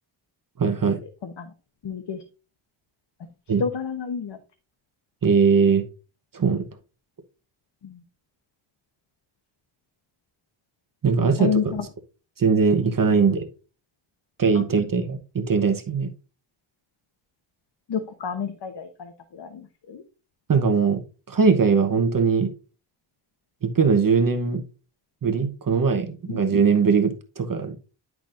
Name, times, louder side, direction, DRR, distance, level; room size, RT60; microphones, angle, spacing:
voice 1, 0.6-1.0 3.5-3.6 5.2-5.8 6.3-6.7 11.0-11.9 12.4-13.5 14.4-16.1 20.5-21.0 21.3-22.5 23.6-24.6 25.2-27.8, right 5 dB, 45° right, 6 dB, 1.0 m, -21 dB
voice 2, 1.8-2.2 3.6-4.4 7.8-7.9 11.2-11.8 14.6-14.7 17.9-19.1 19.4-19.5 19.9-20.0 26.3-26.4, left 7 dB, 60° left, 7 dB, 1.0 m, -28 dB
10.5 x 6.1 x 2.5 m, 0.33 s
wide cardioid pair, 105°, 48 cm